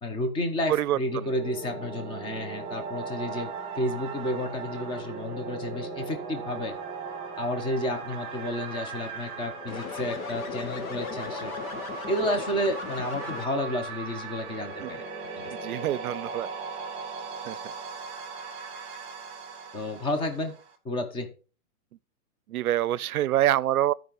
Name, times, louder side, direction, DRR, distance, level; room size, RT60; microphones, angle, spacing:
voice 1, 0.0-6.7 7.4-11.5 12.1-15.0 15.4-15.5 19.7-20.5 20.8-21.3, left 1 dB, 10° left, 1.0 m, -31 dB
voice 2, 0.7-1.3 14.8-14.9 15.5-16.5 17.5-17.6 22.5-23.9, right 13 dB, 75° right, 0.6 m, -26 dB
sound 1, 0.9-20.8, right 4 dB, 15° right, 2.2 m, -38 dB
sound 2, 9.7-13.8, left 5 dB, 65° left, 1.8 m, -38 dB
12.5 x 5.3 x 5.3 m
hypercardioid pair, 155°, 45 cm